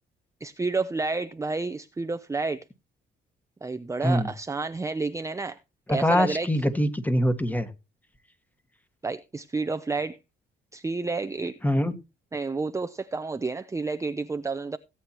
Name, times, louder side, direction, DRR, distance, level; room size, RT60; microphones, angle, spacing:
voice 1, 0.4-2.6 3.6-5.6 5.9-6.5 9.0-10.2 10.7-11.5 12.3-14.8, right 3 dB, 15° right, 0.5 m, -30 dB
voice 2, 5.9-7.7 11.6-11.9, equal, 10° left, 1.6 m, -23 dB
17.5 x 8.4 x 2.9 m
cardioid pair, 90°, 20 cm